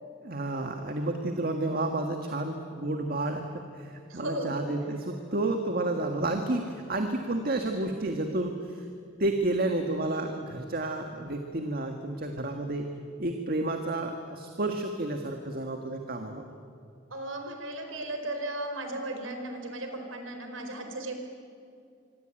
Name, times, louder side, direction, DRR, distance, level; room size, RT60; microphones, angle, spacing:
voice 1, 0.2-8.9 9.2-12.9 13.2-16.4, right 2 dB, 50° right, 4 dB, 1.8 m, -31 dB
voice 2, 4.1-4.6 17.1-21.1, right 1 dB, 85° right, 5 dB, 4.7 m, -35 dB
25.5 x 25.0 x 9.0 m, 2.5 s
head